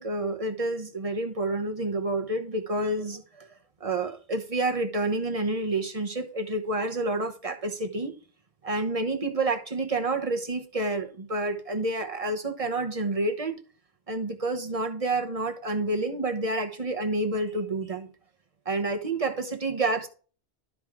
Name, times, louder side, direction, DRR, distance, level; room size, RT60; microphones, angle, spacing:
voice 1, 0.0-3.5 3.8-8.1 8.6-13.6 14.1-18.1 18.6-20.1, right 2 dB, 35° right, 1.1 m, -29 dB
12.0 x 4.9 x 3.6 m
omnidirectional pair, 1.1 m